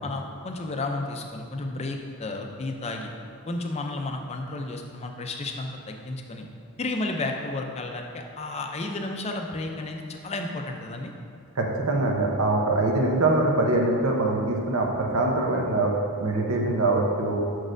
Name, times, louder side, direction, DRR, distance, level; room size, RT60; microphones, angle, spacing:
voice 1, 0.0-3.1 3.5-6.5 6.8-11.1, left 2 dB, 30° left, 3 dB, 0.4 m, -32 dB
voice 2, 11.6-15.9 16.2-17.4, right 2 dB, 75° right, 0 dB, 0.8 m, -23 dB
6.2 x 6.1 x 2.6 m, 2.4 s
head